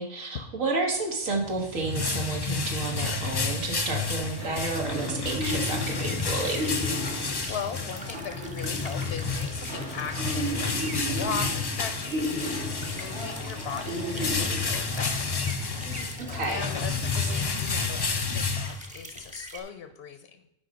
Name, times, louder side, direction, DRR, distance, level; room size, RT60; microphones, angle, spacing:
voice 1, 0.0-6.7 7.4-7.6 16.2-16.7 17.2-17.3, right 3 dB, 85° right, 1 dB, 1.7 m, -31 dB
sound 1, 1.3-19.2, left 4 dB, 35° left, 0.4 m, -31 dB
sound 2, 2.8-17.3, right 1 dB, 55° right, 2.3 m, -36 dB
sound 3, 5.9-19.6, right 1 dB, 5° right, 0.9 m, -45 dB
voice 2, 7.0-20.4, left 6 dB, 60° left, 8 dB, 0.9 m, -39 dB
8.8 x 5.3 x 5.1 m, 0.85 s
omnidirectional pair, 1.3 m